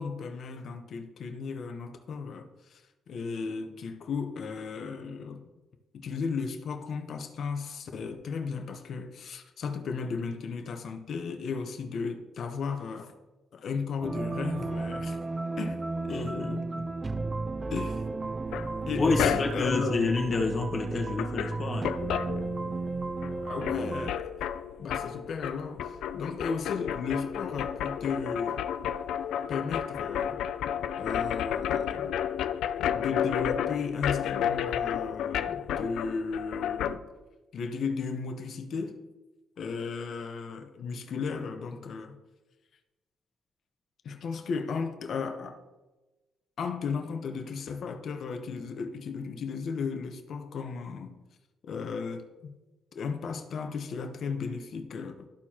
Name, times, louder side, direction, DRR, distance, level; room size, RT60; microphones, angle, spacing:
voice 1, 0.0-2.8 3.1-5.5 5.9-13.1 13.5-15.2 15.6-16.7 17.7-18.0 18.9-20.0 23.4-24.3 24.8-28.6 29.5-30.4 31.0-32.2 32.9-37.1 37.5-39.0 39.6-42.2 44.0-45.6 46.6-51.1 51.6-52.5 52.9-55.3, left 5 dB, 60° left, 0.8 m, -35 dB
sound 1, 14.0-24.1, right 3 dB, 25° right, 0.4 m, -34 dB
voice 2, 16.1-16.5 19.0-21.9, left 4 dB, 45° left, 1.3 m, -28 dB
sound 2, 18.5-19.8 20.8-20.9 21.1-23.0 23.2-37.0, left 9 dB, 80° left, 0.3 m, -32 dB
13.0 x 4.5 x 2.9 m
cardioid pair, 90°, 0 cm